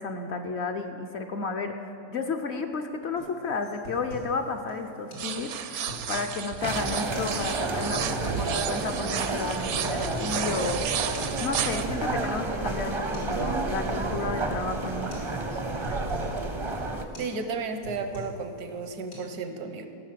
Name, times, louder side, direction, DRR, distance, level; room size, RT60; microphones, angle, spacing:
voice 1, 0.0-11.1 11.4-15.4, left 4 dB, 55° left, 5 dB, 0.8 m, -32 dB
sound 1, 3.2-3.3 3.6-4.4 4.7-4.8 5.1-5.3 5.7-6.4 7.0-7.4 7.7-8.3 9.1-9.3 9.7-10.4 10.7-10.8 11.2-11.3 11.6-12.4 12.7-12.8 13.1-13.4 13.6-14.3 14.7-14.9 15.1-15.3 15.6-16.3 16.7-16.9 17.1-17.4 17.7-18.5 18.8-19.2, equal, 90° left, 3.6 m, -41 dB
sound 2, 5.2-11.8, right 8 dB, 65° right, 0.8 m, -33 dB
sound 3, 6.6-17.1, right 2 dB, 35° right, 0.5 m, -31 dB
voice 2, 17.2-19.9, right 4 dB, 80° right, 8 dB, 1.4 m, -33 dB
15.5 x 6.3 x 7.4 m, 3.0 s
omnidirectional pair, 1.6 m